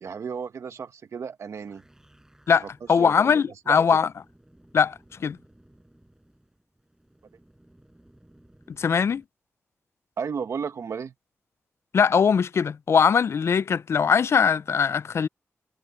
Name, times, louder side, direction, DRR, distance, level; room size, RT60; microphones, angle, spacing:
voice 1, 0.0-1.8 2.6-3.8 10.2-11.1, right 6 dB, 75° right, 1.3 m, -34 dB
sound 1, 1.5-9.3, right 1 dB, 10° right, 6.7 m, -58 dB
voice 2, 2.5-4.1 4.7-5.4 8.8-9.2 11.9-15.3, left 6 dB, 60° left, 0.3 m, -21 dB
wide cardioid pair, 105°, 5 cm